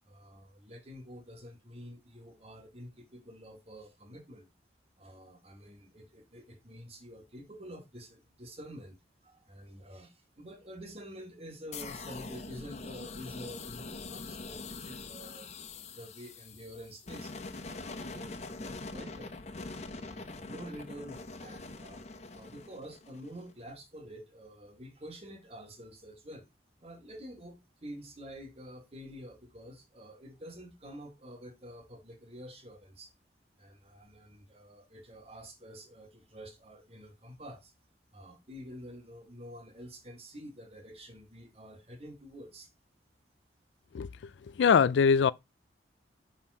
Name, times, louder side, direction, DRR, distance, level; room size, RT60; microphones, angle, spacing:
voice 1, 0.0-4.5 5.0-9.0 9.2-15.5 15.9-17.3 17.6-19.3 19.6-22.0 22.3-26.5 26.8-33.1 33.6-37.7 38.1-42.7, equal, 35° right, 1.6 m, -48 dB
sound 1, 11.7-23.5, left 3 dB, 40° left, 0.6 m, -43 dB
voice 2, 44.6-45.3, left 6 dB, 80° left, 0.4 m, -22 dB
5.5 x 4.3 x 4.8 m
head